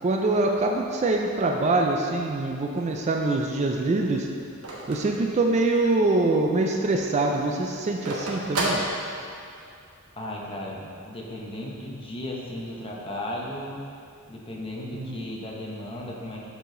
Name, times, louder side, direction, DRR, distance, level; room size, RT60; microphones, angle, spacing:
voice 1, 0.0-4.3 4.9-8.8 14.9-15.2, right 2 dB, 30° right, 2 dB, 0.4 m, -24 dB
Telephone, 2.8-6.0 6.4-6.5 6.7-9.6, right 1 dB, 85° right, 1.2 m, -32 dB
voice 2, 10.2-13.7 14.3-16.5, left 1 dB, 25° left, -3 dB, 0.8 m, -35 dB
6.9 x 4.9 x 3.8 m, 2.4 s
head